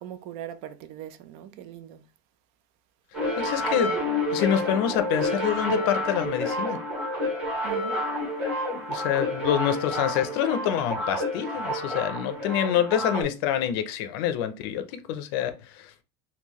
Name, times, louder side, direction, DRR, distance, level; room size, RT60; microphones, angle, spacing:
voice 1, 0.0-2.1 7.6-8.0, right 11 dB, 50° right, 0.5 m, -40 dB
sound 1, 3.1-13.2, left 1 dB, 10° right, 1.5 m, -29 dB
voice 2, 3.4-3.9 4.3-6.8 8.9-15.9, left 10 dB, 65° left, 0.5 m, -26 dB
3.7 x 2.3 x 3.0 m
cardioid pair, 165°, 13 cm